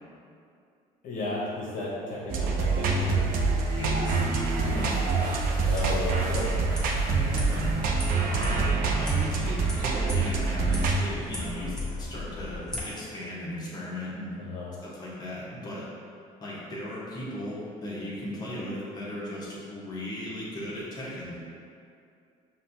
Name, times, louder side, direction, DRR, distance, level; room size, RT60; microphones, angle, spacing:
voice 1, 1.0-3.3 5.6-6.5 14.4-14.7, left 2 dB, 60° left, -6 dB, 0.9 m, -33 dB
sound 1, 2.3-11.0, right 4 dB, 65° right, 0.5 m, -26 dB
voice 2, 3.8-4.2 4.5-5.4 7.1-7.6 8.3-8.6 9.0-14.4 14.8-15.9 16.4-21.4, left 1 dB, 25° left, -7 dB, 1.1 m, -37 dB
sound 2, 5.4-12.8, left 2 dB, 5° left, 1.1 m, -35 dB
5.3 x 2.6 x 2.7 m, 2.4 s
cardioid pair, 100°, 16 cm